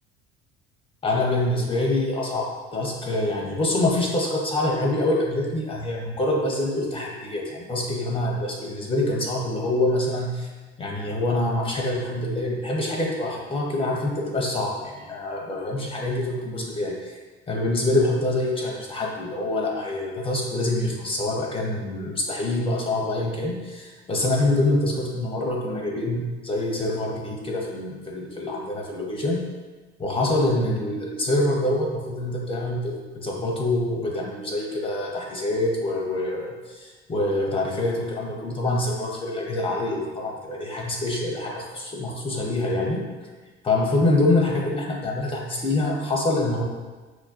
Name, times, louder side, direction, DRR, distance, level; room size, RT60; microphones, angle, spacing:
voice 1, 1.0-10.5 10.8-17.1 17.5-29.4 30.0-43.0 43.6-46.6, left 2 dB, 15° left, 0 dB, 0.8 m, -25 dB
6.0 x 2.1 x 2.8 m, 1.3 s
figure-of-eight pair, 60°, 32 cm